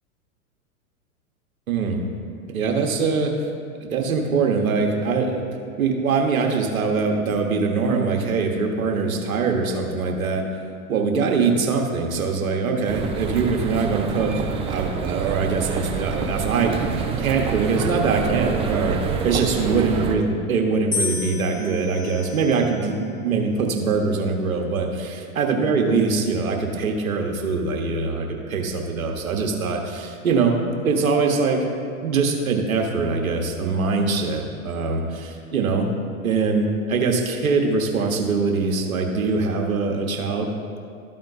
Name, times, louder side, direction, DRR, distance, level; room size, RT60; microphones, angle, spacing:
voice 1, 1.7-2.0 2.5-3.3 3.8-5.5 5.8-10.4 10.9-16.8 17.2-19.0 19.2-30.6 30.8-31.6 32.0-35.9 36.2-40.5, right 4 dB, 75° right, 2 dB, 1.3 m, -23 dB
sound 1, 12.9-20.1, right 6 dB, 15° right, 0.4 m, -27 dB
sound 2, 20.9-23.1 23.9-24.5, left 4 dB, 10° left, 1.5 m, -32 dB
12.5 x 4.3 x 4.1 m, 2.4 s
figure-of-eight pair, 100°, 42 cm